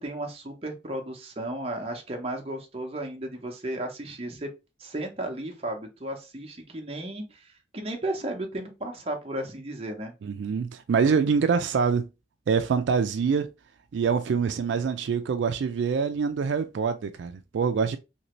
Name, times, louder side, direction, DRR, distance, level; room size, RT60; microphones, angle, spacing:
voice 1, 0.0-4.5 4.8-10.1, right 1 dB, 30° right, 0.7 m, -34 dB
voice 2, 10.2-12.1 12.5-13.5 13.9-18.0, right 5 dB, 80° right, 0.3 m, -25 dB
2.9 x 2.6 x 3.0 m
head